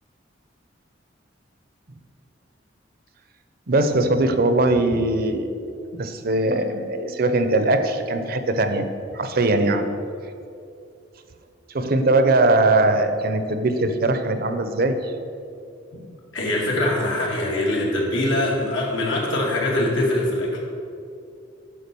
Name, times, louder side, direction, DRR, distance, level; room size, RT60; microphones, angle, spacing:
voice 1, 3.7-5.5 5.9-8.9 9.1-9.9 11.7-15.1, right 2 dB, 50° right, 9 dB, 0.7 m, -20 dB
voice 2, 16.3-20.6, left 1 dB, 85° left, -3 dB, 2.4 m, -23 dB
10.5 x 4.8 x 6.9 m, 2.5 s
head